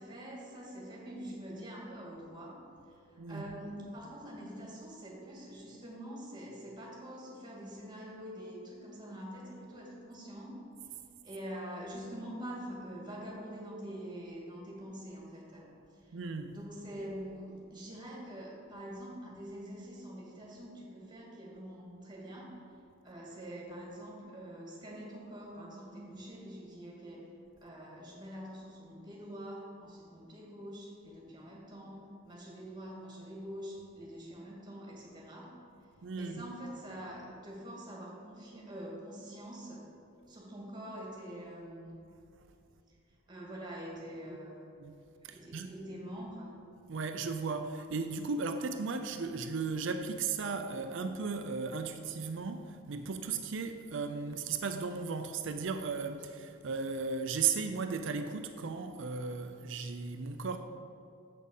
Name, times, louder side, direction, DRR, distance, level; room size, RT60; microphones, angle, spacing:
voice 1, 0.0-10.6 11.2-16.2 16.5-22.6 23.0-27.3 27.6-35.5 36.2-39.9 40.3-41.9 43.3-44.7 45.2-46.5, equal, 20° right, 1.9 m, -45 dB
voice 2, 16.1-16.6 36.0-36.4 44.8-45.0 45.2-45.7 46.9-60.6, right 5 dB, 60° right, 0.5 m, -36 dB
7.5 x 6.5 x 5.4 m
head